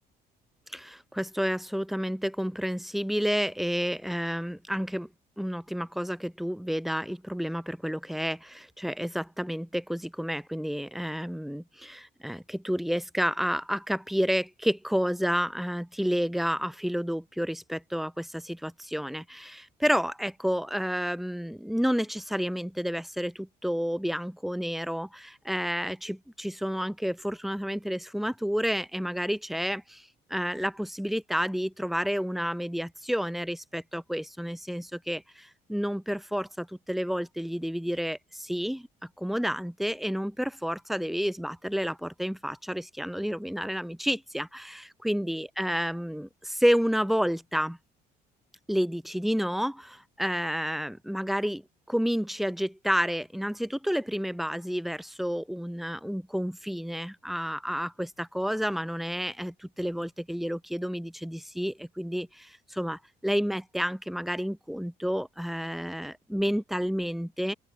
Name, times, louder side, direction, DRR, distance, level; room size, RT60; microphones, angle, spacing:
voice 1, 0.7-5.1 5.4-38.9 39.2-47.8 48.7-51.6 51.9-67.5, equal, ahead, 7.0 m, -30 dB
open air
cardioid pair, 110°, 17 cm